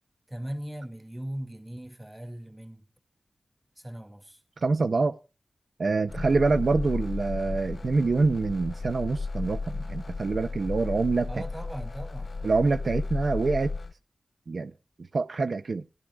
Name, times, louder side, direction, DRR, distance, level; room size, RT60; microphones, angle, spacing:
voice 1, 0.3-2.8 3.8-4.4 11.3-12.3, right 1 dB, 15° right, 2.2 m, -39 dB
voice 2, 4.6-5.2 5.8-11.4 12.4-13.7 14.5-14.7 15.1-15.8, right 3 dB, 70° right, 0.7 m, -26 dB
sound 1, 6.1-13.9, left 3 dB, 50° left, 0.5 m, -34 dB
20.0 x 12.0 x 2.3 m
wide cardioid pair, 85°, 0 cm